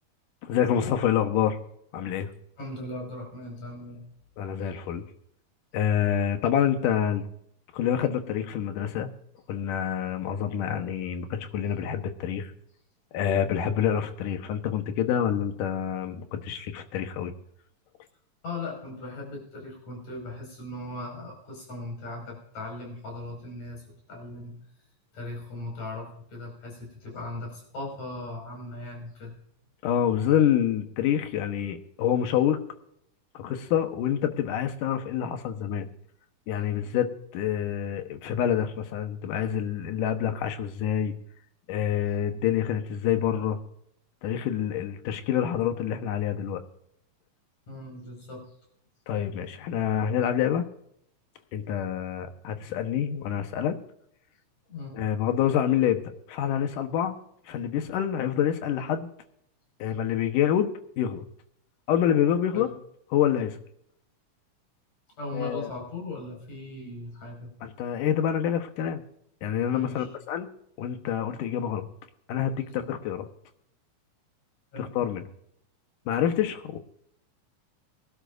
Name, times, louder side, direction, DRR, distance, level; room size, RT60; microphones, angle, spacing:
voice 1, 0.4-1.6 1.9-2.3 4.4-5.0 5.7-7.3 7.7-9.1 9.5-12.5 13.1-17.3 29.8-32.6 33.3-35.9 36.5-41.1 41.7-43.6 44.2-46.6 49.1-50.7 51.5-53.8 54.9-57.2 57.5-59.1 59.8-60.7 61.0-61.2 61.9-62.7 63.1-63.6 65.3-65.7 67.6-69.0 69.4-70.5 70.8-71.9 72.3-73.3 74.8-75.2 76.1-76.8, left 9 dB, 85° left, 8 dB, 2.7 m, -27 dB
voice 2, 2.6-4.0 18.4-24.5 25.1-29.3 47.7-48.5 54.7-55.0 62.5-62.7 65.2-67.5 69.7-70.1 72.7-72.8 74.7-74.9, left 2 dB, 60° left, -1 dB, 6.7 m, -38 dB
23.0 x 12.0 x 2.6 m, 0.71 s
omnidirectional pair, 3.7 m